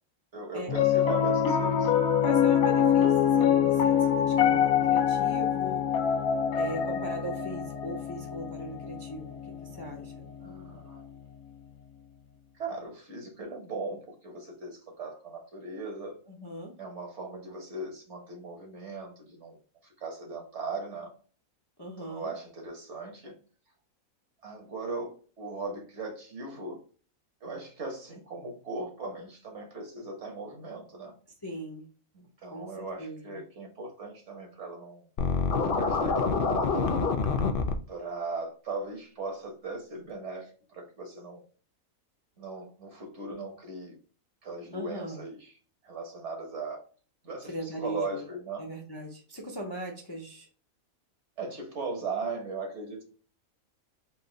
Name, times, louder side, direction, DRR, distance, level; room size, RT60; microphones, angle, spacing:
voice 1, 0.3-1.9 10.4-11.1 12.6-16.2 16.8-21.1 22.0-23.4 24.4-26.8 27.4-31.1 32.1-35.1 35.5-37.0 37.9-41.4 42.4-44.0 44.4-45.5 45.8-46.8 47.2-47.5 47.8-48.6 51.4-53.0, right 3 dB, 55° right, 1 dB, 1.5 m, -38 dB
Piano, 0.7-11.1, left 8 dB, 85° left, 1.2 m, -25 dB
voice 2, 2.2-5.8 6.6-9.4 9.7-10.3 16.3-16.7 21.8-22.3 31.4-31.9 32.4-33.4 44.7-45.2 47.5-48.2 48.6-50.5, right 1 dB, 20° left, 1 dB, 0.7 m, -39 dB
Scratching (performance technique), 35.2-37.7, left 4 dB, 60° left, 0.6 m, -26 dB
4.2 x 2.6 x 3.8 m, 0.39 s
omnidirectional pair, 1.5 m